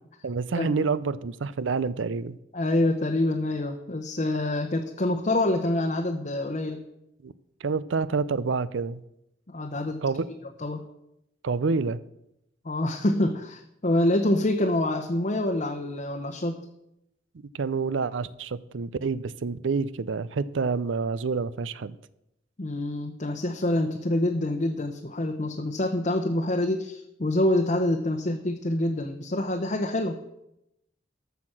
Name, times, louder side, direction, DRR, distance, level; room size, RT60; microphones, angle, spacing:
voice 1, 0.2-2.4 7.2-7.3 7.6-9.0 10.0-10.2 11.4-12.0 17.5-22.0, right 4 dB, 90° right, 17 dB, 0.5 m, -28 dB
voice 2, 2.5-6.8 9.5-10.0 10.6-10.8 12.6-16.7 22.6-30.2, left 1 dB, 40° left, 3 dB, 0.8 m, -26 dB
14.0 x 5.9 x 6.0 m, 0.83 s
head